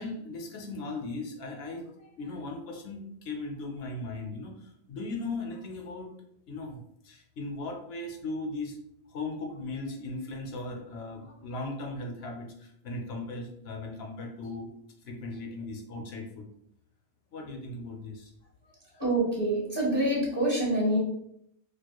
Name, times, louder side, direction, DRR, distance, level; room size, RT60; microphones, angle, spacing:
voice 1, 0.0-6.1 6.5-8.8 9.1-14.7 15.0-16.5 17.3-18.3 18.9-19.0, left 2 dB, 75° left, 3 dB, 0.9 m, -38 dB
voice 2, 19.0-21.0, right 1 dB, 25° right, -5 dB, 1.3 m, -26 dB
4.6 x 2.4 x 2.2 m, 0.75 s
omnidirectional pair, 1.1 m